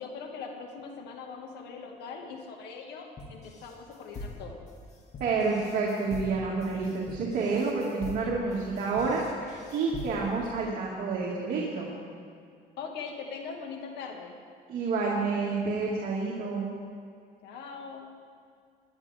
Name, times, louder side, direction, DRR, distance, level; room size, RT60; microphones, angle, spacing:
voice 1, 0.0-4.6 12.8-14.4 17.4-18.1, left 5 dB, 80° left, 2 dB, 1.9 m, -41 dB
sound 1, 3.2-10.5, left 2 dB, 40° left, 2.4 m, -43 dB
voice 2, 5.2-11.9 14.7-16.7, right 4 dB, 55° right, -4 dB, 2.2 m, -29 dB
22.0 x 10.5 x 3.6 m, 2.2 s
cardioid pair, 110°, 17 cm